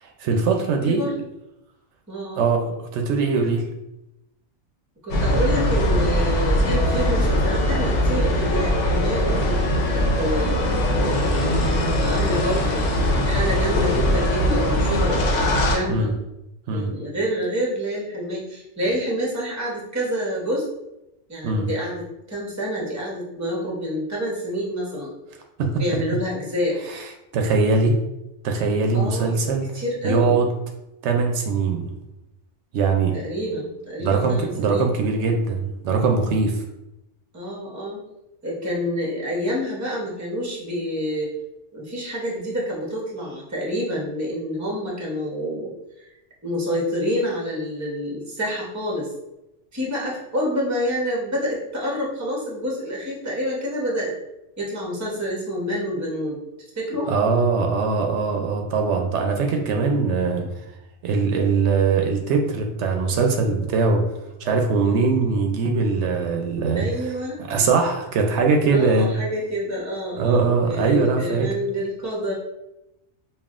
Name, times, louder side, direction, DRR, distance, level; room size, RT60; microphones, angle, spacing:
voice 1, 0.0-1.0 2.4-3.7 15.9-16.1 16.7-16.9 21.4-21.7 25.6-25.7 27.3-27.9 28.4-29.6 30.0-30.5 31.0-31.9 32.7-33.1 34.0-36.6 57.1-60.5 61.0-64.0 64.4-66.9 67.5-69.1 70.2-71.5, right 4 dB, 80° right, 3 dB, 0.9 m, -21 dB
voice 2, 2.1-2.4 5.0-15.2 15.7-16.1 16.7-20.7 21.3-25.1 25.8-26.8 28.9-29.4 29.7-30.4 33.1-34.9 37.3-38.0 38.4-41.3 41.7-46.1 46.4-49.1 49.7-54.1 54.6-56.4 56.8-57.1 66.7-67.4 68.7-72.3, equal, 15° right, -3 dB, 0.7 m, -28 dB
sound 1, 5.1-15.8, left 1 dB, 80° left, 1.0 m, -21 dB
5.4 x 2.3 x 2.4 m, 0.91 s
omnidirectional pair, 1.2 m